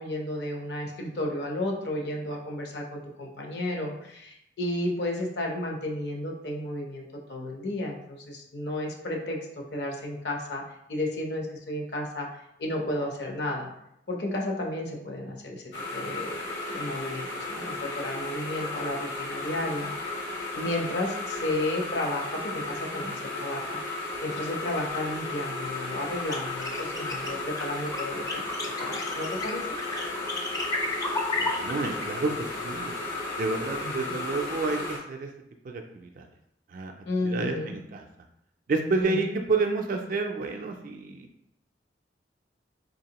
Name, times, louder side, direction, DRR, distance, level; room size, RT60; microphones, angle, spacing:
voice 1, 0.0-10.6 10.9-13.7 14.1-15.6 15.9-20.3 20.5-23.8 24.2-29.7 33.8-34.1 37.0-37.7 39.0-39.3, left 1 dB, 65° left, 0 dB, 0.8 m, -33 dB
sound 1, 15.7-35.0, left 2 dB, 90° left, 1.1 m, -34 dB
sound 2, 26.2-32.1, left 2 dB, 20° left, 0.4 m, -32 dB
voice 2, 31.4-33.0 33.4-35.3 35.6-36.3 36.7-36.9 37.2-38.0 38.7-41.3, right 3 dB, 45° right, 3 dB, 0.3 m, -29 dB
4.0 x 2.9 x 2.9 m, 0.79 s
head